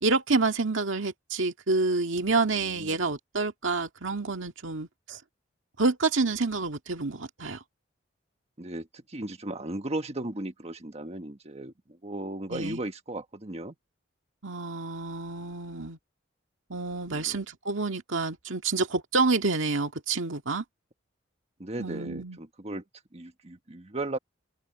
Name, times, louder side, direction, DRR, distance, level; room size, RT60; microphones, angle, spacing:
voice 1, 0.0-5.2 5.8-7.6 12.5-12.8 14.4-16.0 16.7-20.6 21.8-22.4, right 3 dB, 70° right, 2.0 m, -28 dB
voice 2, 2.6-2.9 8.6-13.7 17.1-17.4 21.6-22.8 23.1-24.2, right 2 dB, 35° right, 1.5 m, -36 dB
head